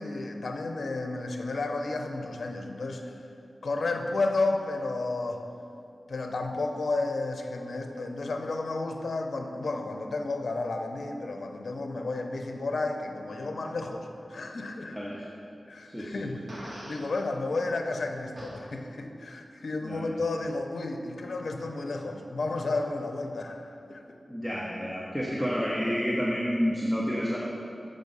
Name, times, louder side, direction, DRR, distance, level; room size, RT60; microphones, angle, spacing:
voice 1, 0.0-3.2 3.6-5.4 6.1-15.0 15.7-16.4 16.8-24.0, left 2 dB, 75° left, 4 dB, 0.6 m, -32 dB
voice 2, 14.9-15.2 15.8-16.3 19.8-20.1 24.3-27.4, equal, 5° right, -5 dB, 0.9 m, -29 dB
Fart, 16.5-17.1 18.4-18.5, right 1 dB, 40° right, 1.6 m, -42 dB
7.4 x 5.1 x 5.4 m, 2.7 s
wide cardioid pair, 75°, 0 cm